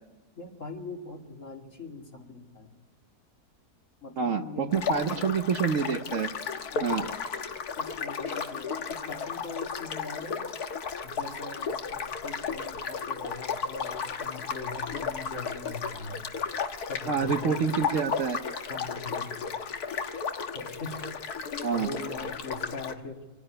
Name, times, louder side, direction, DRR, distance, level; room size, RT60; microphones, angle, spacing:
voice 1, 0.4-2.7 4.0-5.3 6.7-7.0 7.8-10.4 11.0-16.2 16.9-17.8 18.7-19.5 20.5-21.2 21.7-23.2, left 3 dB, 50° left, 1 dB, 2.9 m, -41 dB
voice 2, 4.2-6.3 6.8-7.0 17.0-18.4 21.6-21.9, right 6 dB, 55° right, 7 dB, 1.2 m, -27 dB
sound 1, 4.7-22.9, left 6 dB, 70° left, 1.8 m, -34 dB
24.5 x 17.0 x 9.9 m, 1.1 s
omnidirectional pair, 1.7 m